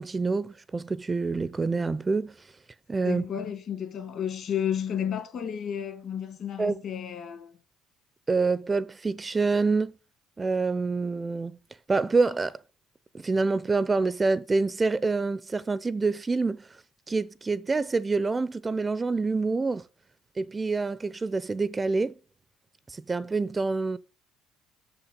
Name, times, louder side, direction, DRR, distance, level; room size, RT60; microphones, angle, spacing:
voice 1, 0.0-2.3 2.9-3.2 6.6-6.8 8.3-9.9 10.4-11.6 11.9-12.6 13.1-16.6 17.1-19.8 20.4-22.2 22.9-24.0, right 3 dB, 25° right, 0.5 m, -26 dB
voice 2, 3.0-7.5, left 8 dB, 55° left, 2.0 m, -32 dB
6.2 x 5.9 x 5.2 m
hypercardioid pair, 60°, 0 cm